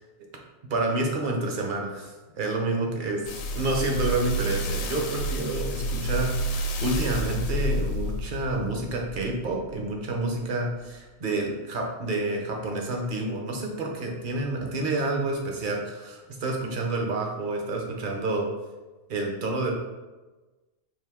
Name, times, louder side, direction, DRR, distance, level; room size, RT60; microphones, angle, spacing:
voice 1, 0.7-3.2 3.5-18.5 19.1-19.7, right 2 dB, 50° right, 1 dB, 0.7 m, -29 dB
sound 1, 3.3-9.7 10.3-10.4, right 1 dB, 90° left, 1.0 m, -29 dB
4.7 x 2.7 x 3.5 m, 1.2 s
omnidirectional pair, 1.3 m